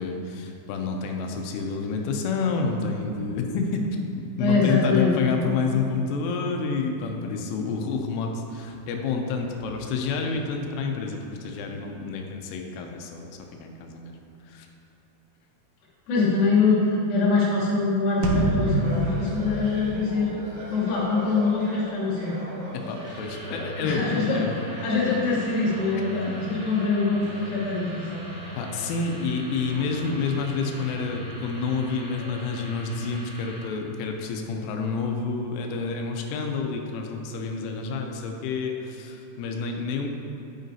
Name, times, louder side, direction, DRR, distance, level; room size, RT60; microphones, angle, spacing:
voice 1, 0.0-3.8 4.1-14.2 14.4-14.7 22.7-24.6 28.6-40.1, left 4 dB, 85° left, 3 dB, 3.1 m, -29 dB
voice 2, 4.4-5.5 16.1-20.3 20.7-22.4 23.8-24.4 24.7-28.1 28.3-28.5, left 4 dB, 65° left, -8 dB, 2.4 m, -24 dB
sound 1, 18.2-20.8, right 2 dB, 85° right, 2.7 m, -27 dB
sound 2, 18.6-32.4, right 1 dB, 65° right, 3.3 m, -42 dB
sound 3, 23.0-33.7, right 1 dB, 50° left, 2.0 m, -40 dB
8.9 x 8.4 x 2.7 m, 2.9 s
omnidirectional pair, 5.6 m